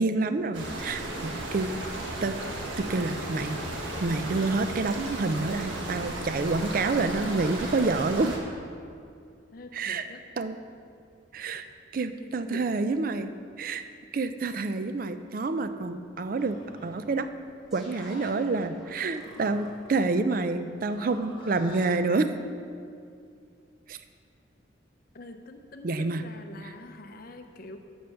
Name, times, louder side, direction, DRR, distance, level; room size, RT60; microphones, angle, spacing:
voice 1, 0.0-1.7 2.2-2.4 2.8-3.6 4.0-8.4 9.7-10.1 10.4-10.6 11.3-11.7 11.9-13.8 14.1-17.3 17.7-22.3 23.9-24.0 25.8-26.2 26.6-26.7, right 3 dB, 45° right, 10 dB, 0.4 m, -28 dB
sound 1, 0.5-8.4, right 1 dB, 90° right, 1.4 m, -35 dB
voice 2, 9.5-10.2 12.2-12.7 25.1-27.8, left 2 dB, 50° left, 6 dB, 0.6 m, -45 dB
Livestock farm animals working animals, 16.2-21.9, left 1 dB, 25° left, 1.2 m, -49 dB
sound 2, 17.7-19.9, equal, ahead, 1.5 m, -49 dB
7.6 x 7.0 x 5.7 m, 2.4 s
head